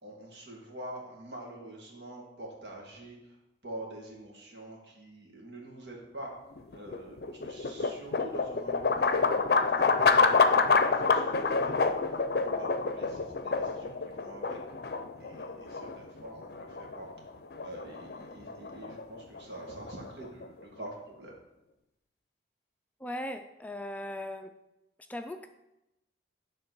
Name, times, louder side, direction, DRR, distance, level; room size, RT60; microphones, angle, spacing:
voice 1, 0.0-6.3 6.7-14.6 15.2-17.3 17.6-21.3, right 1 dB, 75° right, -1 dB, 2.1 m, -46 dB
sound 1, 6.5-20.6, left 4 dB, 60° left, 0.5 m, -28 dB
voice 2, 23.0-24.6 25.1-25.5, left 1 dB, 10° left, 6 dB, 0.3 m, -38 dB
9.5 x 3.8 x 6.0 m, 0.91 s
head